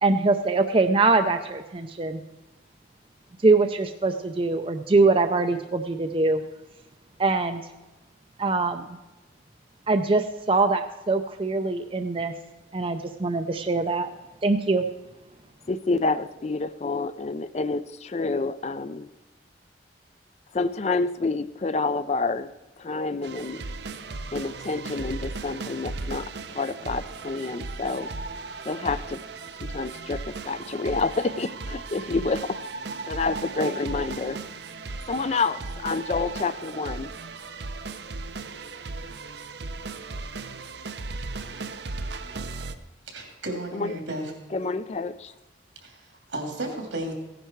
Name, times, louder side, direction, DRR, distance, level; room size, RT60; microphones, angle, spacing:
voice 1, 0.0-2.2 3.4-6.4 7.2-7.6 8.4-9.0 9.9-12.3 12.7-14.1 14.4-14.8, right 3 dB, 30° right, 7 dB, 0.5 m, -23 dB
voice 2, 15.7-19.1 20.5-22.5 22.8-23.6 24.3-28.1 28.7-29.2 29.6-32.6 33.1-34.4 35.1-37.1 43.7-44.0 44.5-45.3, left 3 dB, 35° left, 14 dB, 0.4 m, -28 dB
sound 1, 23.2-42.7, right 3 dB, 65° right, 0.7 m, -36 dB
voice 3, 43.1-44.3 45.8-47.1, right 1 dB, 85° right, 2 dB, 2.9 m, -33 dB
15.5 x 10.0 x 4.5 m, 1.1 s
head